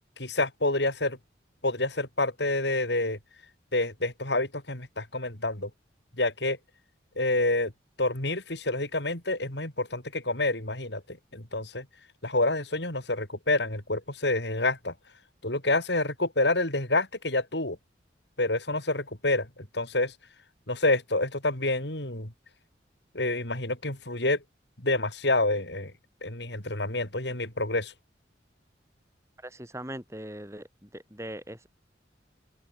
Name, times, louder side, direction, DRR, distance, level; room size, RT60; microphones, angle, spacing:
voice 1, 0.2-1.2 1.6-3.2 3.7-5.7 6.2-6.6 7.2-7.7 8.0-11.0 11.3-11.8 12.2-14.9 15.4-17.8 18.4-19.5 19.7-20.1 20.7-22.3 23.1-24.4 24.8-25.9 26.2-27.9, left 2 dB, 70° left, 5.1 m, -28 dB
voice 2, 29.4-31.7, right 1 dB, 15° right, 7.6 m, -40 dB
open air
head